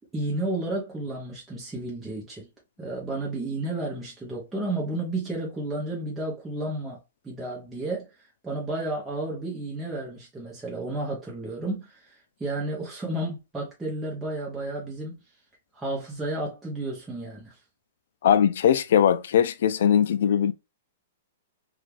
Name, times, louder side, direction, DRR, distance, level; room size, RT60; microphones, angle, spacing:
voice 1, 0.1-2.5 2.8-8.1 8.4-15.2 15.7-17.5, right 2 dB, 5° right, 0.6 m, -32 dB
voice 2, 18.2-20.5, left 9 dB, 60° left, 0.3 m, -20 dB
2.6 x 2.3 x 3.1 m
hypercardioid pair, 170°, 0 cm